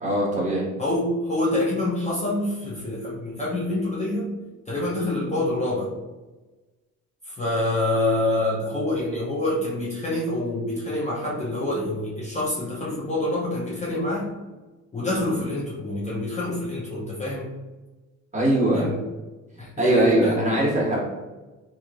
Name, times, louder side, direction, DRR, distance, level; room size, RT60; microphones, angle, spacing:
voice 1, 0.0-0.6 18.3-18.9 19.8-21.0, right 1 dB, 25° right, -4 dB, 1.2 m, -21 dB
voice 2, 0.8-4.3 4.7-5.9 7.2-14.3 14.9-17.6 18.7-19.0 19.6-20.5, left 1 dB, 25° left, -5 dB, 0.6 m, -26 dB
3.0 x 2.6 x 2.4 m, 1.2 s
cardioid pair, 90°, 30 cm